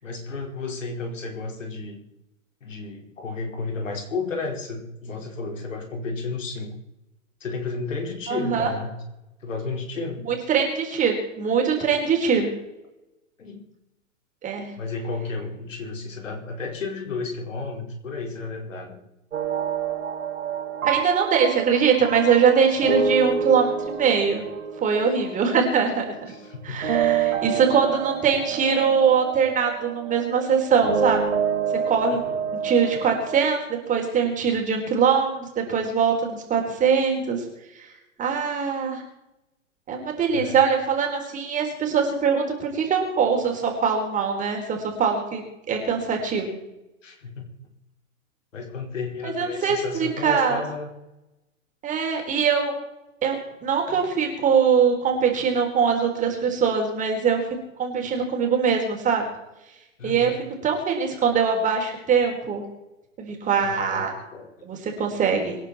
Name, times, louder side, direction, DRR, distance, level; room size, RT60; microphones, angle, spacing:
voice 1, 0.0-2.0 2.6-6.7 7.4-9.0 9.4-10.2 13.4-13.7 14.8-19.0 26.3-26.7 32.2-32.4 40.3-40.6 47.0-47.3 48.5-50.9 53.9-54.0 60.0-60.4 63.6-64.5, left 4 dB, 70° left, 2 dB, 5.1 m, -32 dB
voice 2, 8.3-8.7 10.2-12.5 14.4-14.7 20.8-24.4 24.8-26.1 26.6-31.2 31.9-32.2 32.6-37.4 37.8-37.9 38.2-39.0 39.9-46.6 49.2-50.6 51.8-52.7 53.2-57.4 57.8-59.3 60.0-60.3 60.6-62.6 63.2-64.1 64.6-65.6, right 6 dB, 20° right, 1 dB, 4.2 m, -22 dB
sound 1, 19.3-26.5 26.8-33.5, right 7 dB, 70° right, 4.7 m, -28 dB
26.0 x 10.5 x 4.4 m, 0.91 s
figure-of-eight pair, 120°, 40 cm